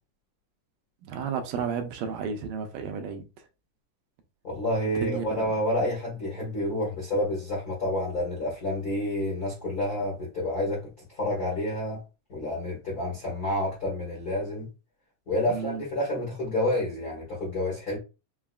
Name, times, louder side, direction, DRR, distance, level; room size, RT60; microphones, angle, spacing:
voice 1, 1.0-3.3 4.9-5.6 15.5-15.8, right 6 dB, 85° right, 2.1 m, -33 dB
voice 2, 4.4-12.0 12.3-14.7 15.3-18.0, left 1 dB, 65° left, 0.9 m, -29 dB
5.5 x 2.0 x 2.3 m
omnidirectional pair, 3.8 m